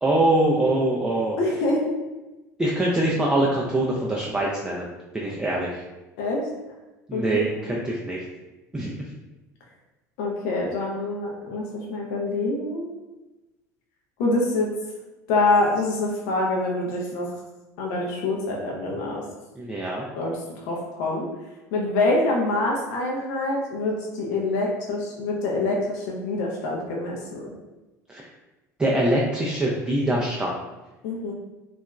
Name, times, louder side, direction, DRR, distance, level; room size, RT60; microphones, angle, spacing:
voice 1, 0.0-1.4 2.6-5.8 7.1-8.2 8.7-9.0 19.6-20.0 28.1-28.2 28.8-30.6, right 1 dB, 10° right, -3 dB, 0.3 m, -24 dB
voice 2, 1.4-1.8 2.8-2.9 6.2-6.4 7.1-7.2 10.2-12.9 14.2-14.7 15.3-17.3 17.8-19.2 20.2-20.4 20.6-21.3 21.7-27.5 31.0-31.3, left 2 dB, 55° left, -2 dB, 0.4 m, -25 dB
2.7 x 2.3 x 2.3 m, 1.1 s
figure-of-eight pair, 65°, 10 cm